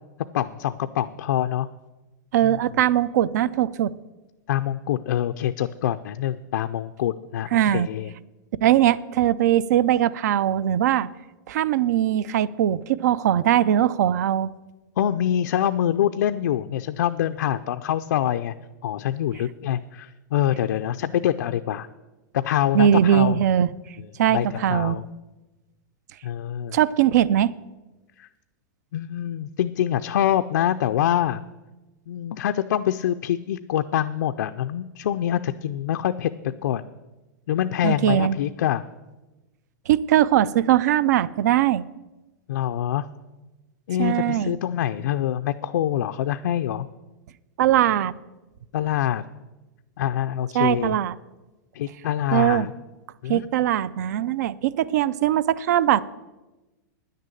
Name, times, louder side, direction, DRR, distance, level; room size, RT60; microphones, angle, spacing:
voice 1, 0.3-1.7 2.4-2.6 4.5-8.1 15.0-18.5 18.8-21.9 22.3-23.4 24.3-25.1 26.2-26.8 28.2-28.3 28.9-31.4 32.1-36.3 36.6-36.9 37.5-38.8 42.5-43.1 43.9-46.9 48.7-49.2 50.0-51.0 51.7-52.7 53.2-53.5, left 11 dB, 75° left, 7 dB, 0.5 m, -25 dB
voice 2, 2.3-3.9 7.5-7.9 8.6-11.1 11.5-14.5 22.7-23.7 24.2-25.0 26.7-27.5 37.8-38.4 39.9-41.9 44.0-44.6 47.6-48.1 50.5-51.2 52.3-52.7 53.3-56.0, right 11 dB, 60° right, 19 dB, 0.5 m, -20 dB
10.0 x 6.7 x 9.1 m, 1.1 s
supercardioid pair, 170°, 10 cm